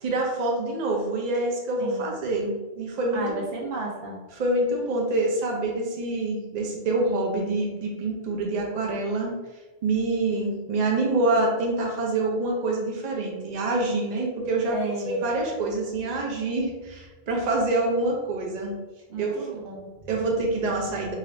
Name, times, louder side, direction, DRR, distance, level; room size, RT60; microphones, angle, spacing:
voice 1, 0.0-3.4 4.3-9.3 9.8-18.8 19.2-19.6 20.1-21.1, right 2 dB, 45° right, -1 dB, 0.7 m, -26 dB
voice 2, 1.8-2.1 3.1-4.2 10.6-10.7 14.7-15.2 19.1-19.9, right 2 dB, 70° right, -1 dB, 0.9 m, -33 dB
3.8 x 2.5 x 3.2 m, 1.2 s
omnidirectional pair, 1.0 m